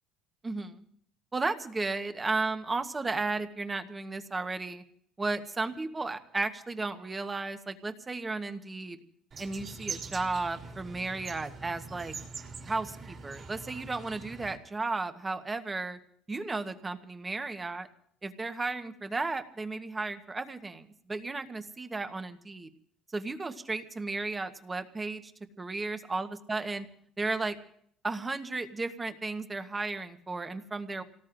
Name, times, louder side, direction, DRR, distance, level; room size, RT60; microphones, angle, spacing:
voice 1, 0.4-0.9 1.3-4.8 5.2-9.0 9.4-12.2 12.6-16.0 16.3-17.9 18.2-22.7 23.1-25.3 25.6-26.9 27.2-27.6 28.0-31.0, right 3 dB, 15° right, 8 dB, 1.1 m, -34 dB
sound 1, 9.3-14.6, right 4 dB, 35° right, 2.5 m, -43 dB
28.5 x 18.0 x 2.6 m, 0.64 s
cardioid pair, 140°, 0 cm